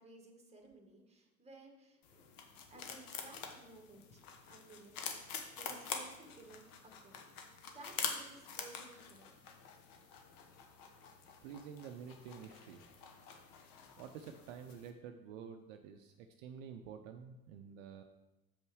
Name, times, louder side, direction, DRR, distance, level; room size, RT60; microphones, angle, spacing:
voice 1, 0.0-2.0 2.7-4.9 5.5-7.2 7.7-9.4, right 2 dB, 15° right, 3 dB, 1.6 m, -57 dB
sound 1, 2.0-14.9, left 6 dB, 50° left, 1.1 m, -47 dB
voice 2, 11.4-12.8 14.0-18.0, right 7 dB, 60° right, 5 dB, 0.7 m, -49 dB
7.2 x 5.3 x 4.7 m, 0.99 s
figure-of-eight pair, 70°, 44 cm